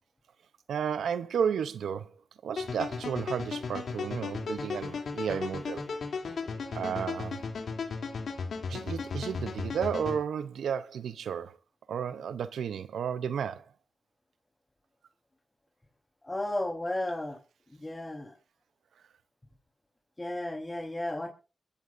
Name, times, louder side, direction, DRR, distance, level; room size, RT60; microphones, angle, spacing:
voice 1, 0.7-2.2 2.4-5.9 6.7-7.4 8.7-11.6 11.9-13.7, right 7 dB, 90° right, 0.6 m, -33 dB
sound 1, 2.6-10.2, left 4 dB, 75° left, 2.7 m, -35 dB
voice 2, 16.2-17.4 17.7-18.3 20.2-21.3, left 1 dB, 25° left, 3.6 m, -33 dB
22.5 x 14.0 x 2.5 m
cardioid pair, 45°, 0 cm